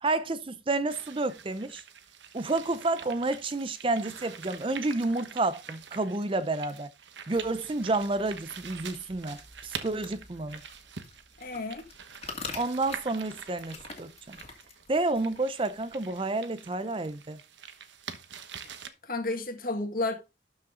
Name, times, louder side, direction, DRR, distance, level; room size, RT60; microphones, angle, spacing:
voice 1, 0.0-1.8 2.3-6.9 7.3-10.6 12.5-14.4 14.9-17.4, right 2 dB, 30° right, 0.5 m, -30 dB
sound 1, 0.9-18.9, right 7 dB, 80° right, 1.1 m, -46 dB
sound 2, 7.3-16.2, left 4 dB, 35° left, 2.3 m, -47 dB
voice 2, 11.4-11.9 19.0-20.1, left 2 dB, 50° left, 1.9 m, -31 dB
12.5 x 5.5 x 3.8 m
head